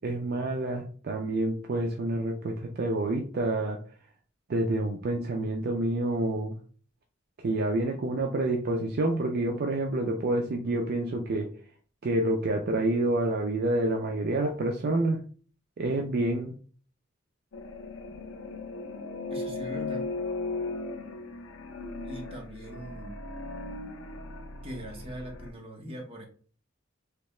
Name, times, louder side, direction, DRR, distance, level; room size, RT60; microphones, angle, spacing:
voice 1, 0.0-3.8 4.5-6.6 7.4-11.5 12.0-15.2 15.8-16.5, right 2 dB, 50° right, 3 dB, 0.4 m, -28 dB
sound 1, 17.5-25.5, left 3 dB, 85° left, 0.6 m, -37 dB
voice 2, 19.3-20.1 22.0-23.2 24.6-26.3, equal, 30° right, 0 dB, 0.8 m, -41 dB
3.4 x 2.7 x 3.1 m, 0.42 s
head